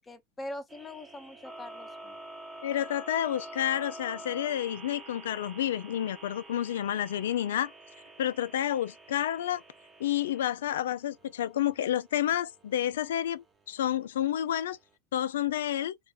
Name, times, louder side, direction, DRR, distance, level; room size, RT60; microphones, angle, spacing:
voice 1, 0.0-2.2, left 1 dB, 20° left, 0.7 m, -42 dB
sound 1, 0.7-14.9, right 2 dB, 25° right, 0.8 m, -48 dB
voice 2, 2.6-7.7 8.2-9.6 10.0-14.8 15.1-16.0, left 11 dB, 80° left, 0.3 m, -30 dB
2.4 x 2.1 x 3.2 m
hypercardioid pair, 100°, 0 cm